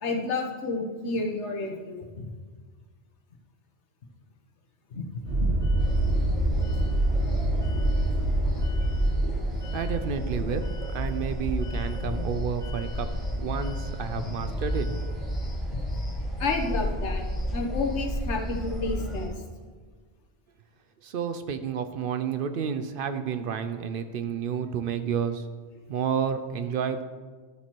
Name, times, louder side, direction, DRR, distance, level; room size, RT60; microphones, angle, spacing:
voice 1, 0.0-2.3 4.9-5.0 5.4-5.5 12.0-12.2 14.2-14.5 15.7-16.0 16.4-19.3, left 3 dB, 90° left, 2 dB, 1.3 m, -31 dB
sound 1, 5.2-17.1, right 2 dB, 90° right, 2.7 m, -29 dB
sound 2, 5.8-19.3, equal, 45° left, 2.7 m, -32 dB
voice 2, 9.7-14.9 21.0-25.5 25.9-27.0, right 7 dB, 60° right, 9 dB, 0.6 m, -30 dB
12.5 x 4.4 x 4.4 m, 1.5 s
omnidirectional pair, 1.1 m